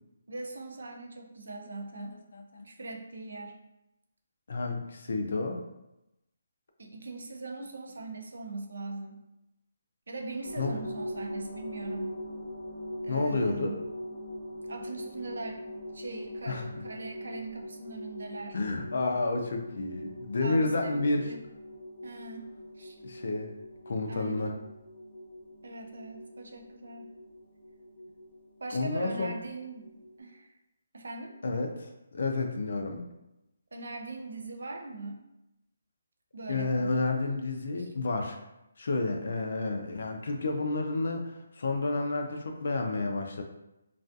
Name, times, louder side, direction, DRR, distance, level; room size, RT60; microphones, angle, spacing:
voice 1, 0.3-2.2 2.6-3.6 6.8-9.3 10.1-12.2 13.0-13.8 14.7-15.7 15.9-18.6 20.4-21.4 22.0-22.5 22.8-23.0 24.1-24.6 25.6-27.1 28.6-30.6 30.9-31.4 33.7-35.2 36.3-37.0 37.8-37.9, right 3 dB, 70° right, 3 dB, 0.4 m, -41 dB
voice 2, 2.3-2.7 4.5-5.6 10.6-10.8 13.1-13.8 16.5-16.7 18.5-21.3 23.0-23.5 23.9-24.5 28.7-29.3 31.4-33.1 36.5-38.4 38.8-43.4, left 3 dB, 50° left, 3 dB, 0.3 m, -30 dB
sound 1, 10.4-30.2, equal, 5° left, 0.6 m, -42 dB
2.3 x 2.3 x 2.6 m, 0.91 s
hypercardioid pair, 180°, 0 cm